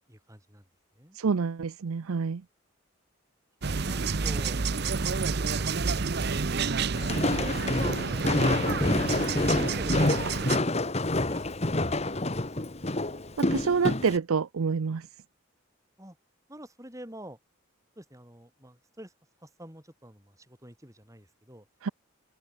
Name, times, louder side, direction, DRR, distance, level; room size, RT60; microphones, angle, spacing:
voice 1, 0.1-0.6 1.0-1.2 3.6-4.6 7.5-8.7 9.2-10.9 11.3-12.1 16.0-16.2 16.5-17.4 18.0-19.1 19.4-21.7, equal, 15° right, 7.4 m, -47 dB
voice 2, 1.2-2.4 13.4-15.1 21.8-21.9, right 5 dB, 85° right, 0.5 m, -27 dB
sound 1, 3.6-10.6, right 4 dB, 50° right, 0.7 m, -29 dB
Walk footsteps, 6.9-14.2, left 2 dB, 30° left, 1.3 m, -27 dB
head